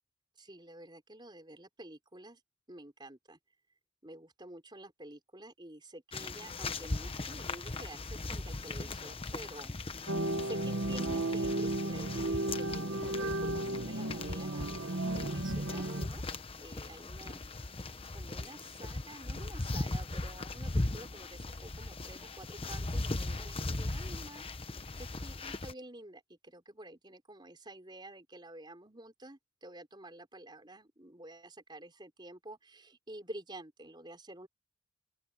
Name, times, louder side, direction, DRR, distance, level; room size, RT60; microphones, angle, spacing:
voice 1, 0.4-2.4 2.7-3.4 4.0-16.2 16.6-34.5, right 1 dB, 20° right, 4.6 m, -50 dB
sound 1, 6.1-25.7, left 2 dB, 30° left, 0.9 m, -39 dB
sound 2, 10.1-16.1, right 1 dB, 70° right, 1.4 m, -34 dB
open air
head